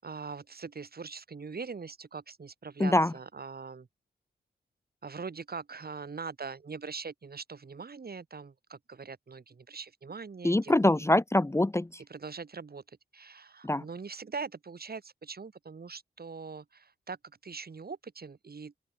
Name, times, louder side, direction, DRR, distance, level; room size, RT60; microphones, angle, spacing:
voice 1, 0.0-3.9 5.0-10.8 12.1-18.7, right 5 dB, 55° right, 7.3 m, -42 dB
voice 2, 2.8-3.1 10.4-12.0 13.6-13.8, left 1 dB, 15° left, 0.9 m, -24 dB
open air
cardioid pair, 65°, 19 cm